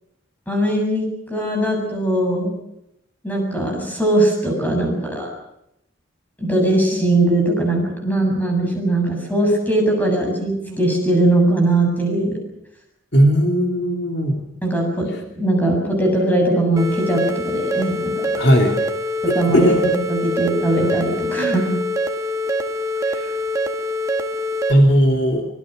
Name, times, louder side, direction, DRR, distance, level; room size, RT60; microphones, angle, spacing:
voice 1, 0.5-2.5 3.2-5.3 6.4-12.4 14.6-15.1 15.4-18.3 19.3-21.7, right 1 dB, 10° left, 1 dB, 7.5 m, -20 dB
voice 2, 13.1-14.4 18.4-18.8 19.3-19.8 23.1-23.3 24.7-25.4, equal, 55° left, 3 dB, 2.8 m, -17 dB
sound 1, 16.8-24.7, equal, 15° right, 1.6 m, -24 dB
25.0 x 21.5 x 6.5 m, 0.81 s
head